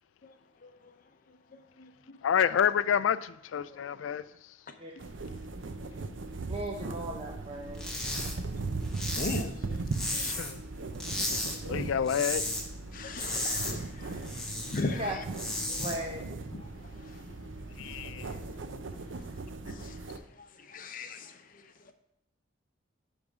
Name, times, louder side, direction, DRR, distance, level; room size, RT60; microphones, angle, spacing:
voice 1, 1.5-1.9 3.7-3.8 9.1-10.3 11.6-11.8 12.9-14.1 14.7-15.0 15.7-15.8 16.6-16.7 17.1-17.2 18.3-18.4 19.7-20.0 20.4-21.3, left 3 dB, 45° left, 0.7 m, -38 dB
voice 2, 2.2-4.2 10.1-10.6 11.7-12.4 17.8-18.4, left 8 dB, 85° left, 0.3 m, -28 dB
sound 1, 5.0-20.2, right 3 dB, 75° right, 0.6 m, -39 dB
voice 3, 6.5-8.0 15.0-15.1 15.8-16.2, right 1 dB, 30° right, 0.7 m, -37 dB
sound 2, 7.7-8.3 8.6-10.6 11.0-11.6 11.9-12.6 12.9-14.8 15.2-16.0, left 1 dB, 5° left, 1.2 m, -34 dB
10.5 x 3.6 x 4.8 m
head